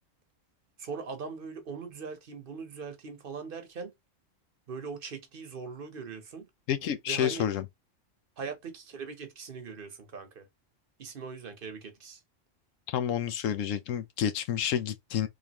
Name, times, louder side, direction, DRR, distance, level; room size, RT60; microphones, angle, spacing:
voice 1, 0.8-3.9 4.7-6.5 7.1-7.4 8.4-10.5 11.0-12.2, right 5 dB, 50° right, 0.9 m, -40 dB
voice 2, 6.7-7.7 12.9-15.3, left 9 dB, 85° left, 1.0 m, -29 dB
3.8 x 3.3 x 2.9 m
omnidirectional pair, 1.3 m